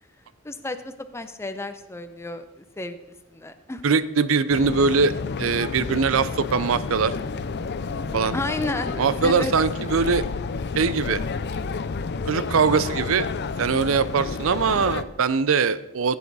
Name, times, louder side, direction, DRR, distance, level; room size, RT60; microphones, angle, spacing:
voice 1, 0.4-3.0 3.3-3.8 8.3-9.5, left 2 dB, 15° left, 9 dB, 0.6 m, -32 dB
voice 2, 3.8-5.1 5.4-7.1 8.1-8.3 9.0-10.2 10.7-11.2 12.3-13.3 13.6-16.2, right 5 dB, 70° right, 15 dB, 0.5 m, -22 dB
sound 1, 4.5-15.0, left 4 dB, 55° left, 0.5 m, -30 dB
16.0 x 8.3 x 4.1 m, 1.0 s
head